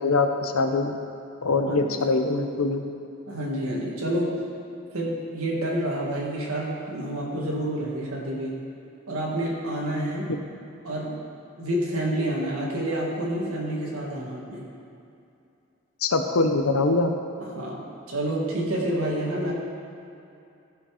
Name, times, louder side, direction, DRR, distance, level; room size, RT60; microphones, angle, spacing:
voice 1, 0.0-1.0 1.4-2.8 16.0-17.1, left 3 dB, 85° left, 6 dB, 0.8 m, -23 dB
voice 2, 1.7-2.1 3.3-4.3 4.9-8.6 9.1-10.3 10.8-11.3 11.6-14.6 17.4-19.5, right 1 dB, 85° right, -3 dB, 1.9 m, -28 dB
14.0 x 5.3 x 4.9 m, 2.6 s
head